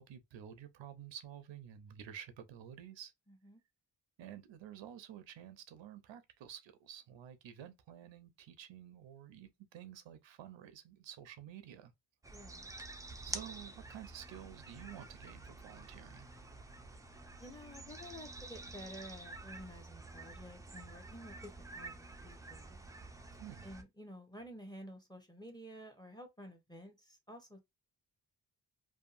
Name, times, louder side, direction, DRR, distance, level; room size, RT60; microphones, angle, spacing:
voice 1, 0.0-3.1 4.2-11.9 13.2-16.3 23.4-23.7, right 10 dB, 85° right, 0.6 m, -51 dB
voice 2, 3.3-3.6 12.3-12.7 17.4-21.9 22.2-22.8 23.6-27.6, equal, 10° left, 0.8 m, -51 dB
sound 1, 12.2-23.8, right 2 dB, 10° right, 0.3 m, -49 dB
2.7 x 2.3 x 2.4 m
cardioid pair, 80°, 44 cm